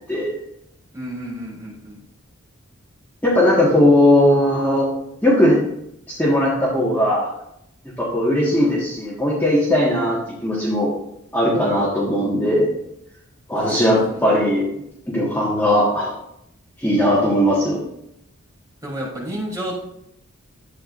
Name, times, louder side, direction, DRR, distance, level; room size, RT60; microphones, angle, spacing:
voice 1, 0.9-2.0 13.6-14.2 18.8-19.8, right 1 dB, 15° right, -5 dB, 3.7 m, -31 dB
voice 2, 3.2-4.9 5.2-5.6 6.1-7.3 8.0-10.9 11.3-12.7 13.5-16.1 16.8-17.8, left 1 dB, 10° left, -7 dB, 1.7 m, -18 dB
11.5 x 8.6 x 2.6 m, 0.78 s
head